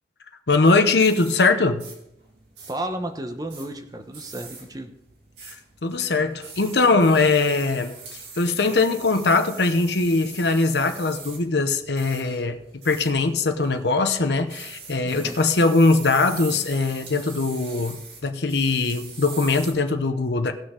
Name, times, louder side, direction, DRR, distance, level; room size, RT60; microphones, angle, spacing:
voice 1, 0.5-1.8 5.5-5.6 5.8-7.9 8.4-12.6 12.8-20.5, left 3 dB, 70° left, 7 dB, 0.8 m, -21 dB
sound 1, 0.6-19.7, right 4 dB, 75° right, 2.6 m, -43 dB
voice 2, 2.6-4.9 15.0-15.4, right 1 dB, 20° right, 6 dB, 1.0 m, -33 dB
18.0 x 6.3 x 3.8 m, 0.81 s
head